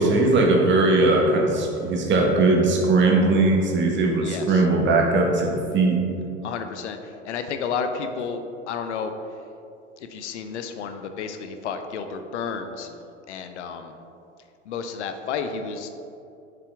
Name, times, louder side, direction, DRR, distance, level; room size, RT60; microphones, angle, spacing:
voice 1, 0.0-6.0, right 2 dB, 30° right, 1 dB, 1.2 m, -19 dB
voice 2, 4.2-4.7 6.4-9.1 10.0-12.9 13.3-14.0 14.7-15.9, left 6 dB, 75° left, 7 dB, 0.6 m, -31 dB
6.8 x 5.0 x 3.5 m, 2.6 s
hypercardioid pair, 85°, 36 cm